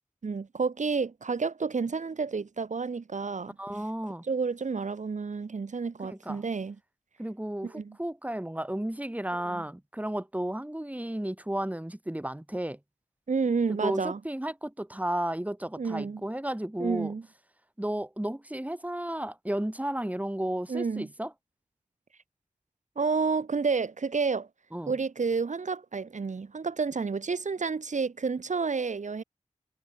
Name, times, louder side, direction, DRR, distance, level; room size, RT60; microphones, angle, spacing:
voice 1, 0.2-3.5 4.3-6.8 7.6-8.0 9.5-9.6 13.3-14.2 15.8-16.2 16.8-17.2 20.7-21.1 23.0-24.5 24.9-29.2, right 4 dB, 75° right, 2.7 m, -30 dB
voice 2, 3.6-4.2 6.0-6.4 7.2-12.8 13.7-17.1 17.8-21.3 24.7-24.9, right 1 dB, 10° right, 4.0 m, -33 dB
cardioid pair, 50°, 13 cm